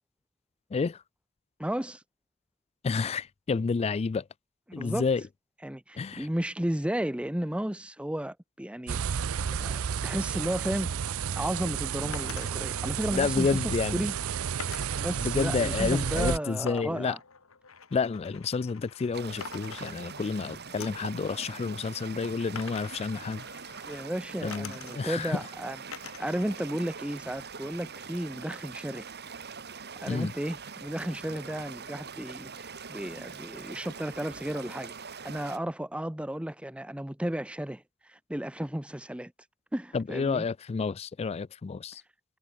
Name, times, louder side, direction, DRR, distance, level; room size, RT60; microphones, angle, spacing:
voice 1, 0.7-1.0 2.8-4.3 4.7-5.2 6.0-6.3 13.1-14.1 15.2-17.2 17.9-23.5 24.4-25.4 30.1-30.3 39.9-42.0, left 4 dB, 30° left, 0.3 m, -30 dB
voice 2, 1.6-2.0 4.8-5.1 5.6-9.0 9.6-10.9 11.4-13.6 13.9-14.1 15.0-17.2 23.9-29.1 30.0-34.9 35.2-39.3 39.7-40.4, right 1 dB, 5° right, 0.7 m, -33 dB
sound 1, 8.9-16.4, right 7 dB, 80° right, 0.5 m, -31 dB
sound 2, 12.1-12.6 14.6-15.2 16.7-19.1 19.4-20.4 20.8-21.1 22.5-24.0 24.5-25.2 25.9-26.4 26.8-27.6, left 6 dB, 75° left, 2.3 m, -45 dB
sound 3, 19.1-35.6, right 5 dB, 50° right, 3.0 m, -43 dB
head